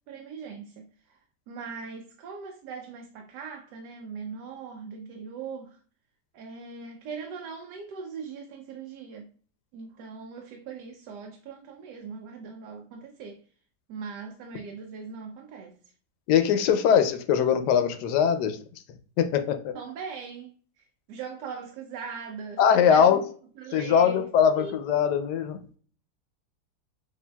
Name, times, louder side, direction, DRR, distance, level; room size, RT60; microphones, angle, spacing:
voice 1, 0.1-0.9 1.5-5.8 6.3-9.3 9.7-13.4 13.9-15.8 19.7-22.6 22.9-23.2 23.6-24.2 24.5-24.8, right 5 dB, 90° right, 1.2 m, -40 dB
voice 2, 16.3-18.6 19.2-19.7 22.6-23.2 23.7-25.6, left 8 dB, 90° left, 1.2 m, -21 dB
6.7 x 2.6 x 2.2 m
omnidirectional pair, 1.7 m